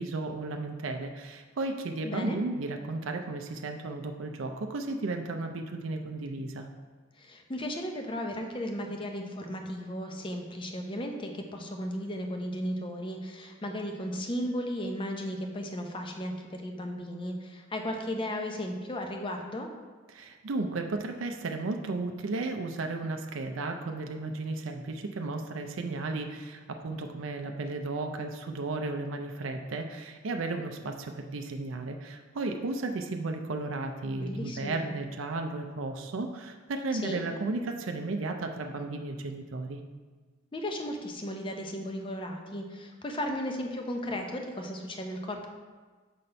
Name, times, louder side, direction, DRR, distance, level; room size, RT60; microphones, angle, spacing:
voice 1, 0.0-6.7 20.1-39.8, right 3 dB, 75° right, 4 dB, 0.5 m, -34 dB
voice 2, 2.0-2.4 7.2-19.7 34.2-34.8 36.9-37.2 40.5-45.5, equal, 25° left, 3 dB, 0.6 m, -35 dB
6.5 x 4.1 x 4.3 m, 1.4 s
head